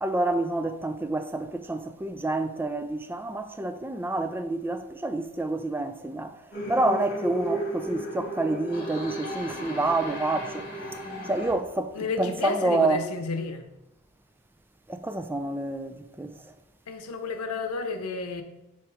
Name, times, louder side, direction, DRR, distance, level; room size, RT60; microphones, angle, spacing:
voice 1, 0.0-6.4 6.7-11.0 11.3-13.0 14.9-16.3, right 2 dB, 10° right, 0.3 m, -28 dB
sound 1, 6.5-11.5, right 1 dB, 45° left, 2.3 m, -34 dB
voice 2, 11.9-13.6 16.9-18.4, left 3 dB, 80° left, 0.8 m, -31 dB
7.9 x 3.0 x 4.9 m
head